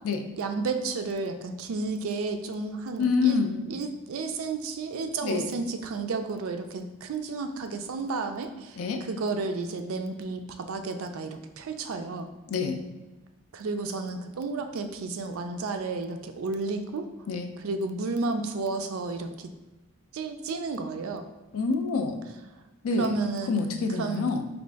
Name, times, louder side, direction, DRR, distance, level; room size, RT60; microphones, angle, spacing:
voice 1, 0.4-3.4 3.7-12.3 13.5-17.0 17.6-19.5 20.1-21.3 23.0-23.5 24.0-24.2, right 3 dB, 75° right, 7 dB, 0.4 m, -32 dB
voice 2, 3.0-3.6 5.2-5.5 8.8-9.0 12.5-12.8 17.3-17.5 21.5-22.2 22.8-23.2 23.5-24.4, left 4 dB, 80° left, 6 dB, 0.4 m, -26 dB
4.0 x 2.4 x 3.4 m, 1.1 s
head